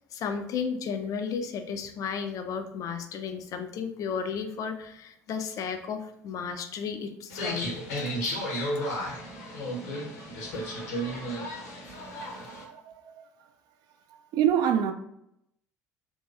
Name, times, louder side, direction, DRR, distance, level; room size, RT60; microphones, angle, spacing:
voice 1, 0.1-7.7, left 6 dB, 40° left, 0.4 m, -33 dB
sound 1, 7.3-12.6, equal, 70° left, 0.7 m, -33 dB
voice 2, 11.9-13.3 14.3-14.9, right 9 dB, 50° right, 0.4 m, -28 dB
3.0 x 2.6 x 2.5 m
figure-of-eight pair, 60°, 8 cm